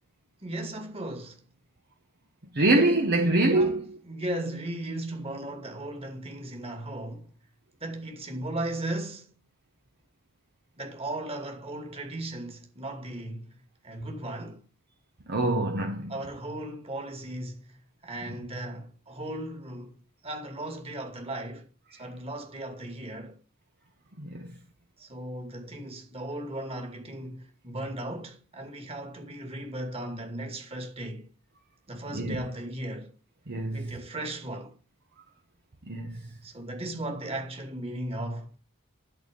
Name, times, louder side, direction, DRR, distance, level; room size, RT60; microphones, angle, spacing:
voice 1, 0.4-1.4 3.5-3.8 4.1-7.3 7.8-9.3 10.8-13.6 13.8-14.6 16.1-17.8 18.0-20.0 20.2-23.4 25.0-31.3 31.9-33.1 33.7-34.8 36.4-38.6, right 1 dB, 25° right, 2.3 m, -36 dB
voice 2, 2.5-4.0 15.3-16.1 18.3-18.4 24.2-24.5 32.1-32.4 33.5-34.0 35.9-36.3, right 2 dB, 50° right, 1.1 m, -25 dB
12.0 x 4.3 x 5.2 m
head